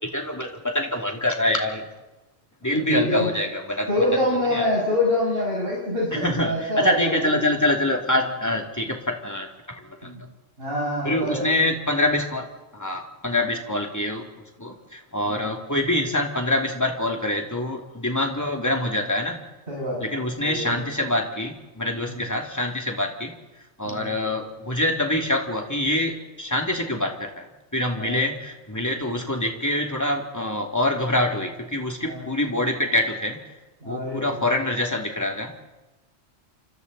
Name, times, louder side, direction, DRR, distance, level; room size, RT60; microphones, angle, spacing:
voice 1, 0.0-1.9 2.6-4.1 4.5-4.7 6.1-9.5 9.8-10.1 11.0-12.5 12.7-14.2 14.6-19.4 20.0-23.3 23.8-27.5 27.7-33.4 33.8-35.5, left 1 dB, 15° left, 1 dB, 2.8 m, -25 dB
voice 2, 2.7-3.3 3.9-7.4 8.2-8.3 10.0-10.2 10.6-11.5 15.2-15.5 19.7-20.1 20.4-20.8 22.1-22.2 23.8-24.1 28.0-28.2 28.9-29.1 32.0-32.2 33.8-34.5, left 1 dB, 50° right, -6 dB, 7.2 m, -26 dB
28.5 x 26.5 x 4.1 m, 1.1 s
omnidirectional pair, 1.3 m